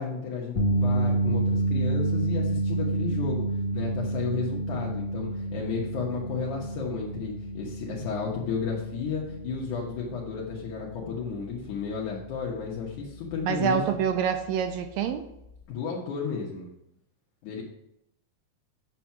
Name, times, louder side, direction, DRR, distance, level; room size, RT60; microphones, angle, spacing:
voice 1, 0.0-3.4 3.7-13.9 15.7-16.7 17.4-17.6, left 5 dB, 70° left, -3 dB, 2.7 m, -33 dB
sound 1, 0.6-12.8 13.1-13.4 15.6-15.7, right 2 dB, 55° left, 1.7 m, -29 dB
voice 2, 13.4-15.2, right 8 dB, 80° right, 9 dB, 1.7 m, -26 dB
8.3 x 6.1 x 5.9 m, 0.83 s
omnidirectional pair, 3.6 m